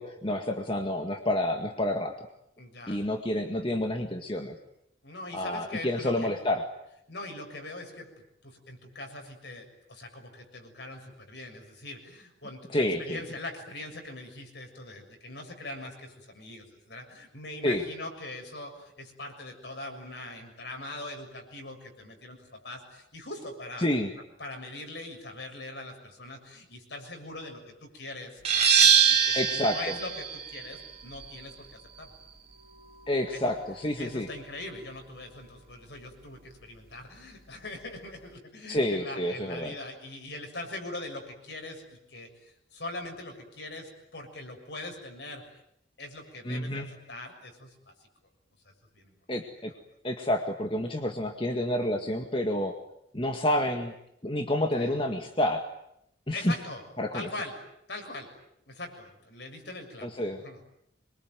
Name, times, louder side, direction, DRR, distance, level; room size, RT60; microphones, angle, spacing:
voice 1, 0.0-2.1 2.9-4.6 5.3-6.6 12.7-13.2 17.6-17.8 23.8-24.1 29.3-30.0 33.1-34.3 38.7-39.7 46.5-46.9 49.3-49.7 50.0-52.7 53.1-53.9 54.2-55.6 56.3-56.5 57.0-57.3 60.0-60.4, left 1 dB, 30° left, 4 dB, 1.9 m, -29 dB
voice 2, 2.6-3.0 5.0-6.3 7.1-23.9 24.4-31.7 32.0-32.1 33.3-33.5 34.0-42.3 42.7-45.4 46.0-47.9 48.9-49.1 54.8-55.0 56.3-56.8 57.1-58.3 58.7-60.6, left 2 dB, 65° left, 4 dB, 6.9 m, -42 dB
sound 1, 28.5-33.9, right 7 dB, 30° right, 3.1 m, -25 dB
27.0 x 23.0 x 9.4 m, 0.77 s
head